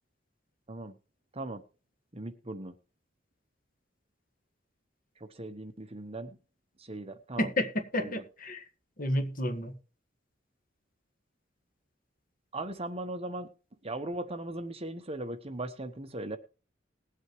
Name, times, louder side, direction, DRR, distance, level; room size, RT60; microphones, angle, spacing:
voice 1, 2.1-2.7 5.4-6.4 6.9-7.5 8.0-8.2 12.5-13.5 13.8-16.4, right 2 dB, 30° right, 1.0 m, -38 dB
voice 2, 7.4-8.6 9.0-9.7, left 1 dB, 45° left, 1.7 m, -31 dB
19.5 x 8.0 x 3.1 m
head